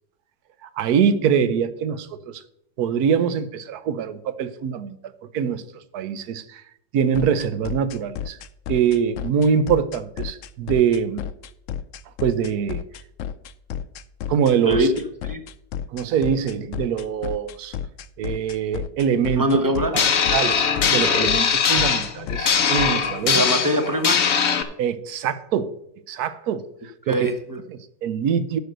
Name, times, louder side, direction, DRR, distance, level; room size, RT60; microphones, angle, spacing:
voice 1, 0.6-2.4 2.8-5.0 5.3-5.6 5.9-6.6 6.9-8.4 8.7-11.2 12.2-12.8 14.3-14.9 15.9-17.7 18.2-19.5 20.3-23.4 24.8-25.8 26.1-26.6 27.1-27.3 27.7-28.6, right 7 dB, 65° right, 13 dB, 1.2 m, -23 dB
sound 1, 7.1-23.1, left 9 dB, 85° left, 0.6 m, -32 dB
voice 2, 19.3-19.9 23.3-24.2 27.1-27.6, right 1 dB, 15° right, 6 dB, 0.8 m, -22 dB
sound 2, 19.9-24.6, left 6 dB, 50° left, 0.9 m, -21 dB
10.0 x 6.3 x 6.7 m, 0.76 s
omnidirectional pair, 1.9 m